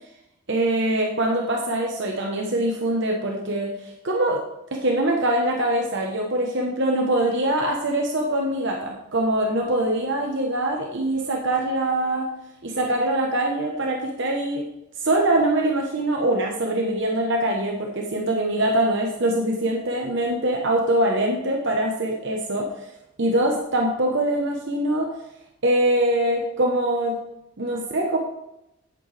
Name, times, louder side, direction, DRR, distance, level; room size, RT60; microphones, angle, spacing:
voice 1, 0.5-4.4 4.7-12.3 12.6-14.7 15.0-22.9 23.2-25.1 25.6-27.2 27.6-28.2, right 1 dB, 50° right, 0 dB, 1.0 m, -23 dB
9.2 x 8.7 x 3.4 m, 0.87 s
head